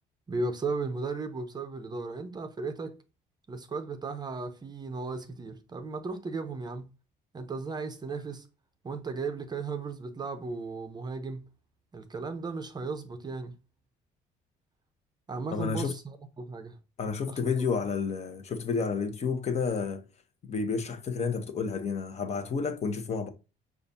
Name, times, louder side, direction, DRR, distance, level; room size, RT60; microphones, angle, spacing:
voice 1, 0.3-3.0 3.5-6.9 7.3-8.5 8.8-11.4 11.9-13.6 15.3-16.8 17.3-17.7, right 3 dB, 25° right, 0.6 m, -35 dB
voice 2, 15.5-15.9 17.0-20.0 20.5-23.3, left 5 dB, 40° left, 0.8 m, -30 dB
6.6 x 2.4 x 2.6 m
cardioid pair, 110°, 17 cm